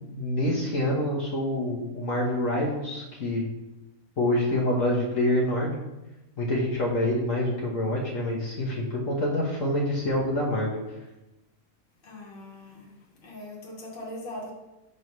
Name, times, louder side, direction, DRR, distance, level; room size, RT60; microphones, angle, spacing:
voice 1, 0.1-3.5 4.2-5.8 6.4-10.8, left 1 dB, 60° left, -4 dB, 1.5 m, -26 dB
voice 2, 12.0-12.9 13.2-14.5, left 1 dB, 40° left, -3 dB, 1.5 m, -40 dB
8.2 x 3.1 x 5.4 m, 0.99 s
omnidirectional pair, 1.6 m